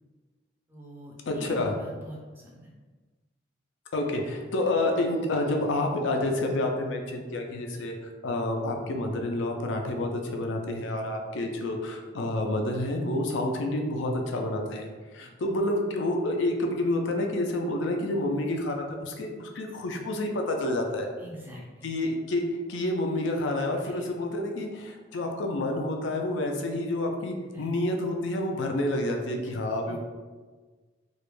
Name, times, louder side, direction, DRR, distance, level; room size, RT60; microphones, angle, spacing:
voice 1, 0.7-2.7 7.7-7.8 10.8-10.9 14.3-14.4 15.2-15.3 21.2-21.9 23.8-24.0 27.5-27.7 29.4-29.5 29.8-30.0, equal, 10° right, -2 dB, 0.4 m, -45 dB
voice 2, 1.3-1.7 3.9-21.1 21.8-22.4 22.7-30.0, left 1 dB, 70° left, 2 dB, 0.4 m, -29 dB
2.3 x 2.1 x 3.1 m, 1.4 s
head